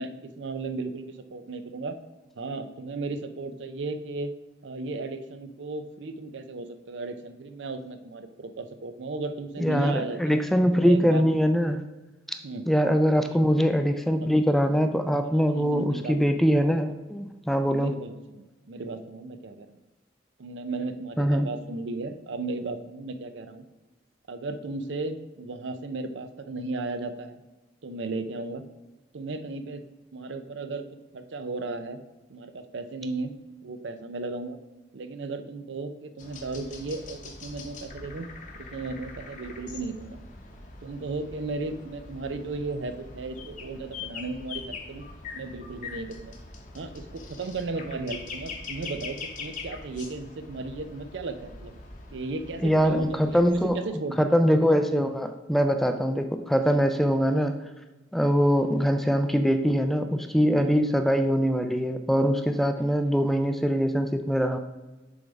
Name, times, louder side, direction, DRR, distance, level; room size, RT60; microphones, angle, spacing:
voice 1, 0.0-2.0 2.4-4.3 4.6-10.4 10.7-11.3 12.4-12.6 13.2-13.4 14.1-14.3 15.5-16.4 17.7-19.7 20.4-23.7 24.3-27.4 27.8-28.6 29.1-29.8 30.1-30.8 31.1-32.0 32.3-33.3 33.6-34.6 34.9-38.3 38.7-40.2 40.8-45.1 45.3-46.3 46.7-51.7 52.1-54.3 56.7-56.8 60.6-60.8, right 3 dB, 70° right, 9 dB, 0.5 m, -35 dB
voice 2, 9.6-11.8 12.7-17.9 21.2-21.5 52.6-53.8 54.2-57.6 58.1-64.6, equal, ahead, 7 dB, 0.3 m, -23 dB
sound 1, 36.2-53.7, left 4 dB, 45° left, 0.9 m, -42 dB
7.0 x 3.4 x 5.1 m, 1.1 s
head